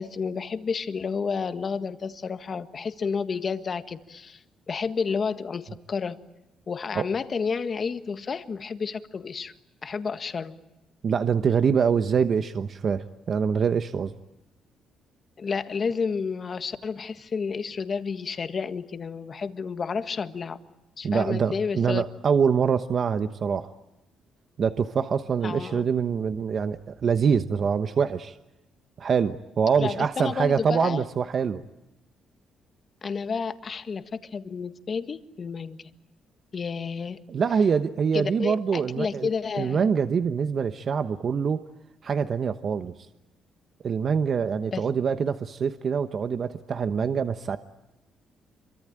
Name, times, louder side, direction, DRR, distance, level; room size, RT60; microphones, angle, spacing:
voice 1, 0.0-6.2 6.7-9.5 9.8-10.5 15.4-20.6 21.0-22.0 25.4-25.8 29.8-31.0 33.0-35.9 36.5-37.2 38.1-39.9 44.7-44.9, left 5 dB, 45° left, 10 dB, 1.6 m, -31 dB
voice 2, 11.0-14.1 21.0-23.7 24.6-28.4 29.0-31.6 37.3-39.3 39.6-41.6 42.0-42.9 43.8-47.6, right 6 dB, 50° right, 10 dB, 1.0 m, -25 dB
26.5 x 24.0 x 8.9 m, 0.94 s
cardioid pair, 90°, 0 cm